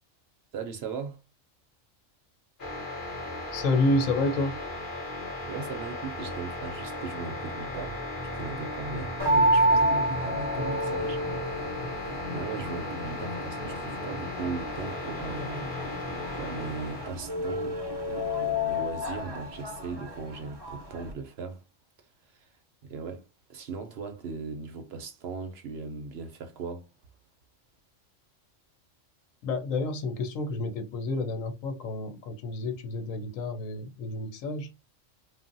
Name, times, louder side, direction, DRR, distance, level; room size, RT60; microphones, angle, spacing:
voice 1, 0.5-1.2 5.5-11.2 11.7-21.6 22.3-22.5 22.8-26.9, right 5 dB, 65° right, 0.7 m, -38 dB
sound 1, 2.6-17.1, left 2 dB, 45° left, 1.0 m, -36 dB
voice 2, 3.5-4.6 29.4-34.7, left 2 dB, 80° left, 1.1 m, -29 dB
sound 2, 9.2-21.1, equal, 30° right, 0.5 m, -30 dB
3.2 x 2.1 x 2.5 m
omnidirectional pair, 1.3 m